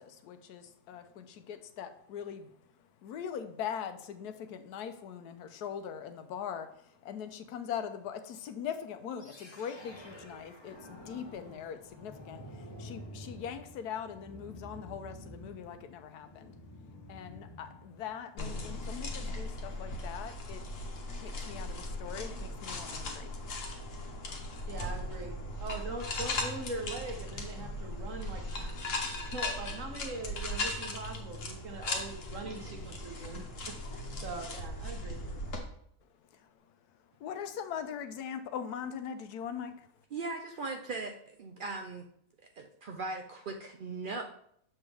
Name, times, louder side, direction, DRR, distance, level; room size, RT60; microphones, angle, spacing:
voice 1, 0.0-23.7 36.0-40.0, left 8 dB, 90° left, 9 dB, 1.2 m, -42 dB
sound 1, 9.2-20.3, equal, 25° left, 0.7 m, -50 dB
sound 2, 18.4-35.6, left 2 dB, 55° left, 1.4 m, -38 dB
voice 2, 24.7-28.7 29.0-33.4 33.7-35.2, right 3 dB, 60° right, 3 dB, 1.3 m, -42 dB
voice 3, 40.1-42.0 42.6-44.2, right 3 dB, 90° right, 3 dB, 0.4 m, -39 dB
7.1 x 5.6 x 3.4 m, 0.69 s
omnidirectional pair, 1.6 m